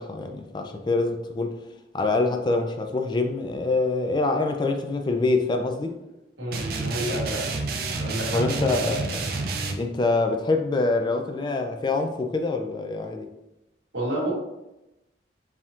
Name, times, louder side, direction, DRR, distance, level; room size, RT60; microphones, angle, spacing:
voice 1, 0.0-1.6 1.9-5.9 8.3-9.3 9.8-13.3, left 3 dB, 25° left, 0.3 m, -25 dB
voice 2, 6.4-7.5 8.0-8.4 8.7-8.8 13.9-14.3, right 1 dB, 90° right, 1.5 m, -29 dB
sound 1, 6.5-9.8, right 3 dB, 50° right, 0.5 m, -29 dB
4.9 x 3.5 x 2.5 m
head